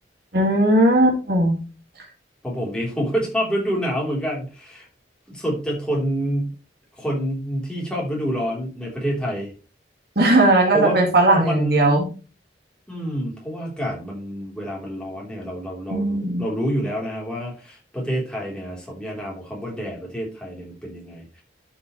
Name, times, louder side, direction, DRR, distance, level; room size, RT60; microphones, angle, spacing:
voice 1, 0.3-1.6 10.2-12.1 15.9-16.4, right 2 dB, 60° right, 2 dB, 2.1 m, -17 dB
voice 2, 2.4-4.9 5.3-6.6 7.0-9.5 10.7-11.0 11.3-12.0 12.9-21.4, equal, 5° left, -3 dB, 3.6 m, -27 dB
12.5 x 5.8 x 3.2 m, 0.33 s
head